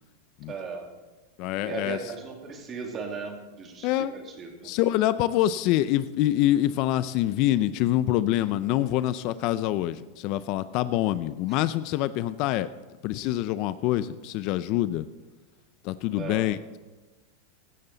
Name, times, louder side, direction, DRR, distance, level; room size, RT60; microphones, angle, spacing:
voice 1, 0.5-0.9 1.6-4.7 16.1-16.5, right 5 dB, 30° right, 2 dB, 2.5 m, -37 dB
voice 2, 1.4-2.0 3.8-4.1 4.6-12.7 13.0-15.1 15.8-16.8, left 14 dB, 50° left, 15 dB, 0.5 m, -25 dB
16.0 x 11.5 x 4.0 m, 1.2 s
supercardioid pair, 130°, 0 cm